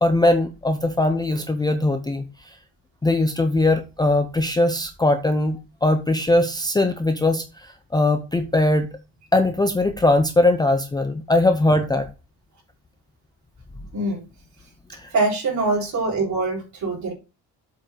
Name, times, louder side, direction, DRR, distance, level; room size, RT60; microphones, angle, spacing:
voice 1, 0.0-2.2 3.0-8.9 9.3-12.1 14.9-15.1, left 2 dB, 10° left, 7 dB, 0.6 m, -20 dB
voice 2, 13.9-14.3 15.1-17.1, right 3 dB, 45° right, -1 dB, 4.0 m, -23 dB
7.8 x 4.6 x 5.1 m, 0.29 s
cardioid pair, 150°, 39 cm